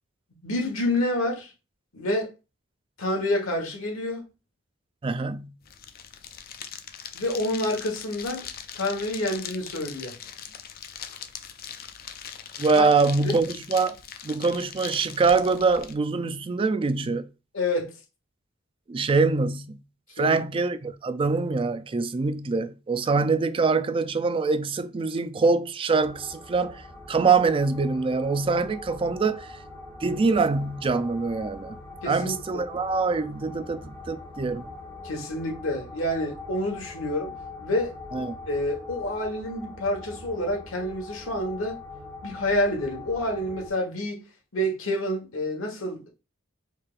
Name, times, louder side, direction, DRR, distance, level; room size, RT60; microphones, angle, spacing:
voice 1, 0.4-1.5 1.9-2.3 3.0-4.2 7.1-8.5 8.7-10.1 12.7-12.9 13.2-13.3 17.5-17.9 20.2-20.4 32.0-32.4 35.0-37.3 37.6-37.9 38.5-41.8 42.2-44.2 44.5-46.1, left 1 dB, 85° left, 1.3 m, -28 dB
voice 2, 5.0-5.5 12.6-14.0 14.2-17.3 18.9-19.8 20.2-29.6 30.0-31.8 32.1-34.7 38.1-38.4, right 4 dB, 25° right, 0.3 m, -24 dB
sound 1, 5.6-15.9, left 8 dB, 45° left, 0.4 m, -41 dB
sound 2, 26.0-43.7, left 3 dB, 10° left, 1.1 m, -42 dB
4.5 x 3.2 x 2.5 m
head